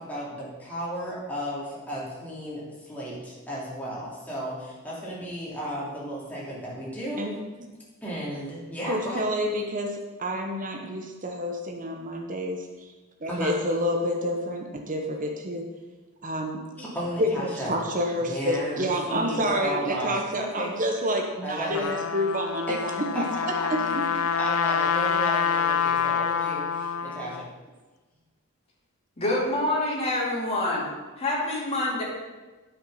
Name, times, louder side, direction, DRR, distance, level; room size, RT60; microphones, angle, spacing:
voice 1, 0.0-7.2 8.0-9.3 13.3-13.6 16.8-17.7 18.3-20.7 21.4-21.9 22.7-22.8 23.1-24.0 24.4-27.5, equal, 10° left, -7 dB, 3.0 m, -34 dB
voice 2, 8.9-12.9 13.2-15.7 16.2-16.6 17.2-23.1 23.7-23.8, equal, 40° right, 2 dB, 1.0 m, -28 dB
Trumpet, 21.5-27.4, left 6 dB, 75° left, 0.5 m, -26 dB
voice 3, 29.2-30.8 31.2-32.0, left 1 dB, 30° left, -5 dB, 2.8 m, -26 dB
9.6 x 6.0 x 5.6 m, 1.2 s
head